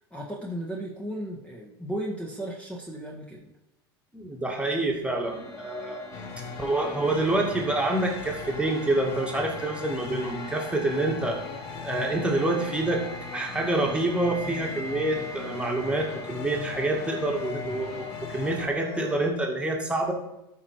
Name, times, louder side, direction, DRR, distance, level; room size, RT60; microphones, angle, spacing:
voice 1, 0.1-3.5, right 1 dB, 10° left, -1 dB, 1.5 m, -35 dB
voice 2, 4.1-6.0 6.6-11.4 11.8-13.0 13.3-20.1, right 2 dB, 10° right, 0 dB, 2.0 m, -27 dB
sound 1, 4.8-19.3, left 4 dB, 25° left, 2.2 m, -41 dB
sound 2, 6.1-18.7, left 5 dB, 55° left, 1.2 m, -40 dB
13.0 x 4.7 x 4.7 m, 0.89 s
hypercardioid pair, 90°, 13 cm